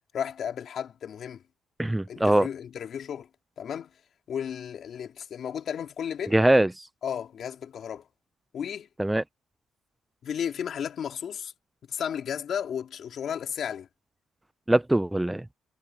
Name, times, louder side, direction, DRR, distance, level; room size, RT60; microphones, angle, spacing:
voice 1, 0.1-1.4 2.1-3.3 3.6-3.9 4.3-6.3 7.0-8.0 8.5-8.9 10.2-11.5 11.9-13.9, left 8 dB, 60° left, 3.0 m, -33 dB
voice 2, 1.8-2.5 6.3-6.9 9.0-9.2 14.7-15.4, right 1 dB, 10° right, 0.4 m, -22 dB
cardioid pair, 90°, 0 cm